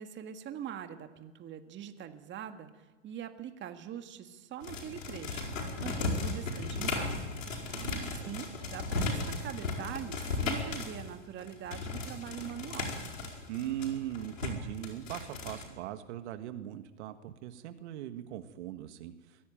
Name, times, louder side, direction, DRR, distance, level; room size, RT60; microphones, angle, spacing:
voice 1, 0.0-5.5 5.8-7.1 7.6-13.0, right 9 dB, 30° right, 7 dB, 1.9 m, -43 dB
sound 1, 4.6-11.1 11.4-15.6, left 3 dB, 85° left, 5.1 m, -36 dB
voice 2, 7.7-8.3 13.5-19.5, right 12 dB, 65° right, 9 dB, 1.6 m, -40 dB
22.0 x 16.5 x 9.1 m, 1.2 s
hypercardioid pair, 110°, 37 cm